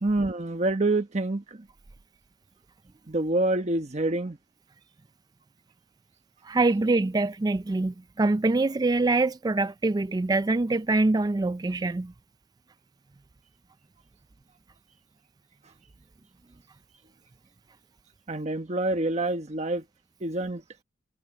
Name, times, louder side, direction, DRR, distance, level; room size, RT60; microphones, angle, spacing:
voice 1, 0.0-1.4 3.1-4.4 18.3-19.8 20.2-20.6, right 2 dB, 35° right, 1.1 m, -26 dB
voice 2, 6.4-12.1, right 2 dB, 20° right, 0.4 m, -24 dB
head